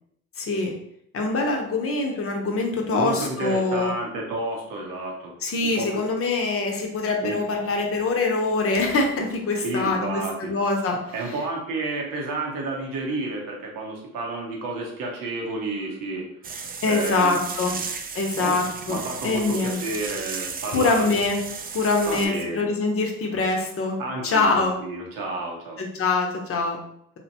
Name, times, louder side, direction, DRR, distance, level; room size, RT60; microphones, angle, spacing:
voice 1, 0.4-0.7 1.1-3.9 5.4-11.4 16.8-17.7 18.1-19.8 20.7-21.4 21.7-24.0 24.2-24.8 25.8-26.8, left 3 dB, 45° left, 1 dB, 0.7 m, -24 dB
voice 2, 2.9-5.3 5.6-5.9 7.2-7.3 9.6-10.5 11.1-16.3 16.8-17.4 18.4-18.5 18.9-21.2 22.1-22.7 24.0-25.8, right 2 dB, 80° right, -1 dB, 0.8 m, -30 dB
sound 1, 16.4-22.3, right 5 dB, 30° right, 0.3 m, -35 dB
2.7 x 2.1 x 2.8 m, 0.73 s
supercardioid pair, 65°, 33 cm